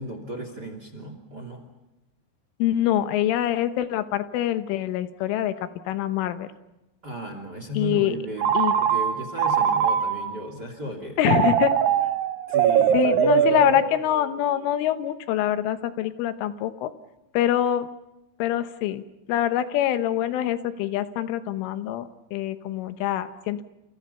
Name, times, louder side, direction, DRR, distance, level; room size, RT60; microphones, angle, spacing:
voice 1, 0.0-1.6 7.0-11.2 12.5-13.8, right 1 dB, 30° right, 7 dB, 2.4 m, -35 dB
voice 2, 2.6-5.5 5.9-6.5 7.8-8.2 8.6-8.7 11.2-11.7 12.9-16.9 17.4-17.9 18.4-19.0 19.3-23.6, left 12 dB, 80° left, 10 dB, 3.6 m, -24 dB
Telephone, 8.4-10.4 11.2-14.3, right 9 dB, 70° right, 2.2 m, -22 dB
29.5 x 28.5 x 5.6 m, 0.96 s
omnidirectional pair, 5.7 m